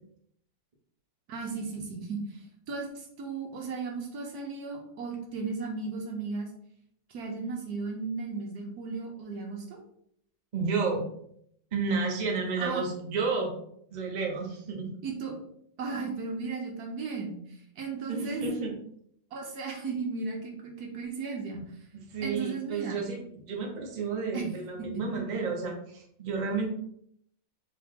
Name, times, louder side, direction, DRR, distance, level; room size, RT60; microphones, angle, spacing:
voice 1, 1.3-6.5 7.1-9.8 12.6-12.8 15.0-15.4 15.8-18.4 19.3-21.6 22.2-23.0 24.3-24.5, right 4 dB, 65° right, 1 dB, 1.2 m, -35 dB
voice 2, 10.5-11.0 11.7-13.5 13.9-14.9 18.1-18.8 21.9-26.7, right 4 dB, 45° right, 0 dB, 0.6 m, -31 dB
3.9 x 3.7 x 2.8 m, 0.69 s
omnidirectional pair, 2.0 m